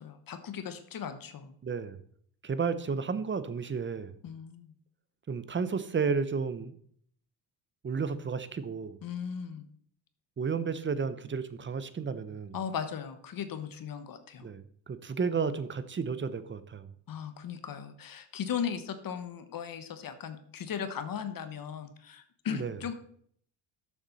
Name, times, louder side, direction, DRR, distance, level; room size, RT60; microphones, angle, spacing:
voice 1, 0.0-1.5 4.2-4.7 9.0-9.6 12.5-14.5 17.1-22.9, left 7 dB, 50° left, 10 dB, 1.2 m, -37 dB
voice 2, 1.6-2.0 2.4-4.1 5.3-6.8 7.8-9.0 10.4-12.5 14.4-16.9 22.5-22.8, right 5 dB, 25° right, 13 dB, 0.8 m, -32 dB
12.5 x 7.2 x 4.1 m, 0.62 s
cardioid pair, 115°, 44 cm